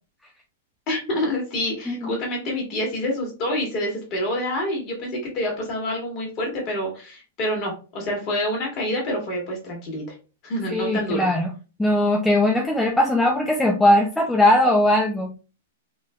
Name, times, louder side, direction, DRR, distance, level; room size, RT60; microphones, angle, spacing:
voice 1, 0.9-10.1 10.4-11.3, left 1 dB, 40° left, 0 dB, 1.7 m, -27 dB
voice 2, 10.7-11.5 11.8-15.3, left 1 dB, 5° left, 0 dB, 0.5 m, -19 dB
3.7 x 2.4 x 2.3 m, 0.33 s
hypercardioid pair, 130°, 0 cm